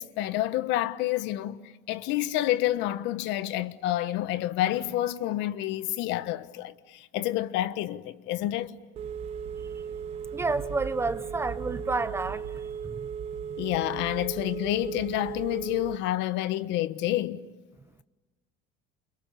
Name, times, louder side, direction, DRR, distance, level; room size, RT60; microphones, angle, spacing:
voice 1, 0.0-8.8 13.6-17.4, left 14 dB, 65° left, 1.4 m, -29 dB
Telephone, 9.0-16.0, right 7 dB, 30° right, 1.1 m, -36 dB
voice 2, 10.3-13.1, right 3 dB, 10° right, 0.9 m, -30 dB
29.5 x 29.0 x 7.0 m
cardioid pair, 160°, 20 cm